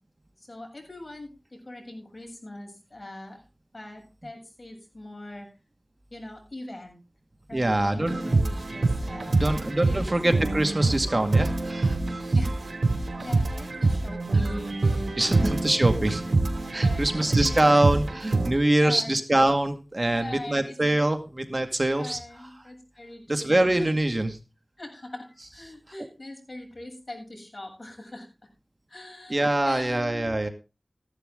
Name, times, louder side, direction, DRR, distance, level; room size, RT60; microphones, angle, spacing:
voice 1, 0.5-3.4 3.7-5.5 6.1-7.0 7.5-10.1 12.3-12.8 13.2-15.5 16.8-17.7 18.5-19.1 20.1-20.7 22.0-23.9 24.8-28.3 28.9-30.4, left 1 dB, 45° left, 2 dB, 7.5 m, -41 dB
voice 2, 7.5-8.3 9.3-12.3 15.2-16.2 16.7-22.2 23.3-24.4 29.3-30.5, right 1 dB, 40° right, 7 dB, 2.0 m, -24 dB
sound 1, 8.0-18.5, right 3 dB, 90° right, 3.0 m, -25 dB
15.5 x 11.5 x 3.7 m, 0.30 s
wide cardioid pair, 45°, 0 cm